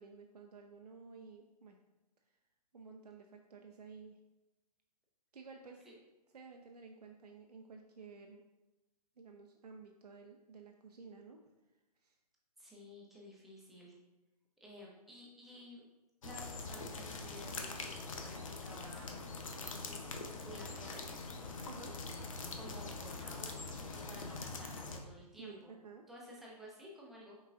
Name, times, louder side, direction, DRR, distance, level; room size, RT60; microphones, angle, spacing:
voice 1, 0.0-1.8 2.7-4.2 5.3-5.9 6.3-8.4 9.2-11.4 12.0-12.2 21.6-22.0 25.4-26.1, right 4 dB, 70° right, 3 dB, 0.5 m, -53 dB
voice 2, 12.6-13.9 14.6-15.8 16.2-18.4 18.6-19.2 19.6-20.1 20.3-21.0 22.5-25.7 26.1-27.4, equal, ahead, -4 dB, 0.6 m, -53 dB
Water drops from the roof some birds, 16.2-25.0, left 3 dB, 55° left, 0.6 m, -44 dB
5.4 x 3.9 x 2.4 m, 1.1 s
figure-of-eight pair, 125°, 21 cm